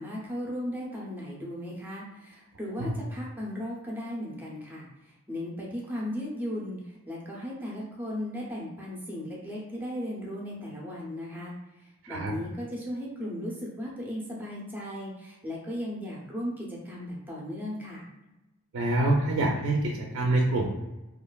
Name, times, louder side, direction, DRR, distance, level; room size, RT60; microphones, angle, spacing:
voice 1, 0.0-18.1, equal, 10° right, -4 dB, 0.6 m, -36 dB
voice 2, 18.7-20.7, right 2 dB, 60° right, -1 dB, 0.4 m, -26 dB
3.0 x 2.4 x 2.2 m, 1.0 s
head